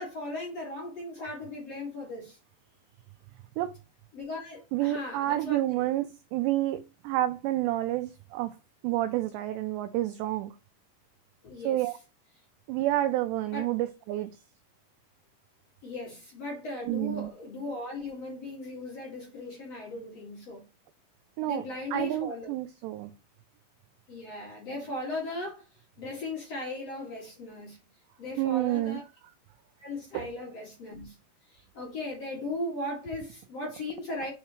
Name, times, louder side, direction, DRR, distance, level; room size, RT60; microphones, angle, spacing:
voice 1, 0.0-2.4 4.1-5.9 11.4-11.9 13.5-13.7 15.8-20.6 21.4-22.5 24.1-25.7 26.0-27.8 28.2-29.0 29.8-31.2 31.5-34.3, left 2 dB, 45° left, 2.5 m, -37 dB
voice 2, 4.7-8.5 8.8-10.5 11.7-11.9 12.7-14.3 16.9-17.3 21.4-21.6 21.9-23.1 28.4-29.0 30.1-30.3, right 15 dB, 90° right, 2.4 m, -29 dB
6.6 x 5.6 x 3.0 m
omnidirectional pair, 5.6 m